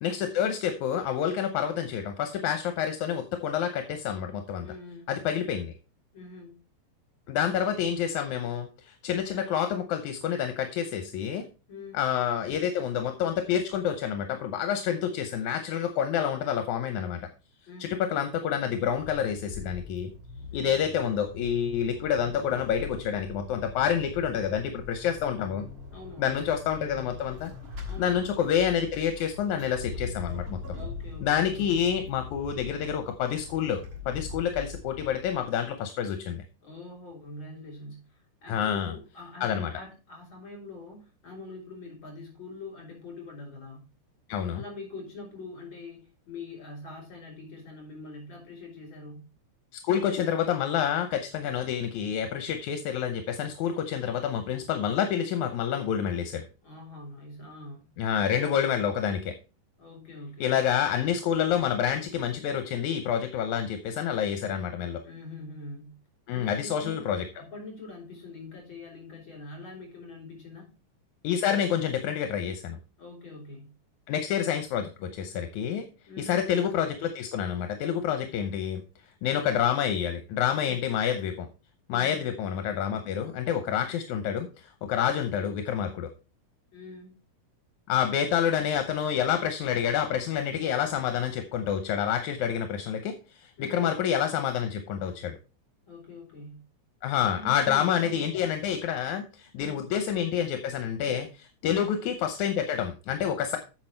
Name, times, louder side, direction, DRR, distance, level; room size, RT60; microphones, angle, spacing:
voice 1, 0.0-4.7 5.1-5.7 7.3-11.4 11.9-17.2 17.8-20.1 20.5-25.6 26.2-27.5 28.0-30.6 31.2-33.8 34.1-36.4 38.5-38.9 39.4-39.7 44.3-44.6 49.7-56.4 58.0-59.3 60.4-65.0 66.3-67.2 71.2-72.8 74.1-75.9 76.2-78.8 79.2-81.5 81.9-86.1 87.9-95.4 97.0-103.6, left 9 dB, 80° left, 7 dB, 2.2 m, -28 dB
voice 2, 4.6-5.1 6.1-6.6 11.7-12.0 17.7-18.1 20.5-20.8 25.9-26.4 27.8-28.2 30.7-31.8 36.6-43.9 44.5-49.3 56.6-57.9 59.8-60.6 65.0-66.0 66.3-67.0 67.4-70.7 73.0-73.7 76.1-76.4 80.6-80.8 81.9-82.3 86.7-87.2 93.6-93.9 95.9-96.6 97.2-98.2 99.6-99.8, left 2 dB, 40° left, 1 dB, 5.1 m, -44 dB
Vehicle / Accelerating revving vroom / Squeak, 18.8-35.7, left 4 dB, 45° right, 3.7 m, -42 dB
8.7 x 6.2 x 4.4 m, 0.33 s
omnidirectional pair, 3.4 m